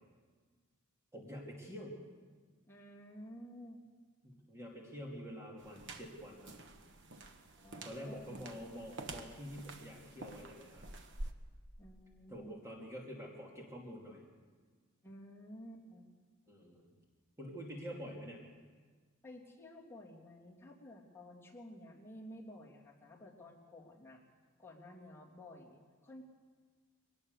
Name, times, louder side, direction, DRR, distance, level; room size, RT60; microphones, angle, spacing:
voice 1, 1.1-2.0 4.2-6.5 7.8-10.9 12.3-14.2 16.5-16.9 17.4-18.4, equal, 15° right, -2 dB, 2.8 m, -47 dB
voice 2, 2.6-3.8 7.6-8.5 11.8-12.5 15.0-16.1 19.2-24.2 24.6-26.2, left 1 dB, 10° left, -4 dB, 3.2 m, -53 dB
sound 1, 5.6-11.3, right 2 dB, 60° right, 1.4 m, -49 dB
23.0 x 19.0 x 6.7 m, 1.5 s
head